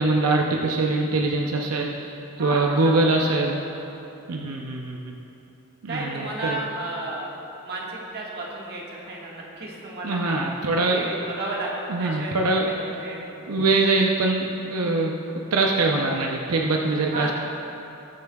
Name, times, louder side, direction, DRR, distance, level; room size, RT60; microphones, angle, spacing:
voice 1, 0.0-2.1 2.4-3.6 4.3-5.2 5.8-6.6 10.0-11.1 11.9-12.6 13.5-15.1 15.5-17.3, right 2 dB, 85° right, 0 dB, 0.6 m, -23 dB
voice 2, 2.4-3.7 5.9-10.4 10.9-13.4 16.8-17.3, right 2 dB, 45° right, -4 dB, 1.6 m, -33 dB
19.5 x 6.9 x 2.3 m, 2.9 s
head